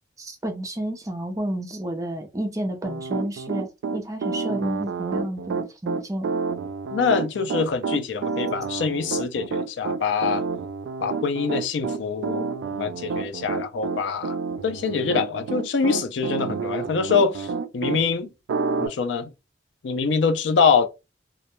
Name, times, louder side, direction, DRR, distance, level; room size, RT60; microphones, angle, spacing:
voice 1, 0.2-6.4, right 1 dB, 20° right, 0.4 m, -31 dB
Piano, 2.8-18.0 18.5-18.9, right 4 dB, 90° right, 0.3 m, -29 dB
voice 2, 6.9-10.5 11.0-14.4 14.6-18.3 18.8-19.3 19.8-20.9, left 5 dB, 85° left, 0.4 m, -24 dB
2.2 x 2.1 x 2.9 m
head